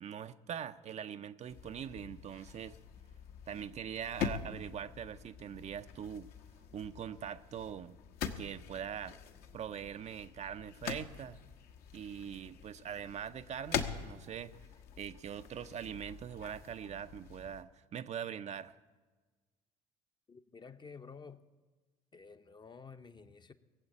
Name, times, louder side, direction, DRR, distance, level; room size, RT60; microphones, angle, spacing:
voice 1, 0.0-2.8 3.5-6.3 6.7-8.0 8.4-9.1 9.5-11.4 11.9-14.5 15.0-18.7, right 8 dB, 40° right, 11 dB, 0.6 m, -42 dB
sound 1, 1.5-17.6, left 7 dB, 55° left, 1.1 m, -44 dB
voice 2, 20.3-21.4 22.1-23.5, left 5 dB, 25° left, 10 dB, 0.8 m, -51 dB
19.5 x 7.9 x 8.6 m, 1.3 s
figure-of-eight pair, 60°, 19 cm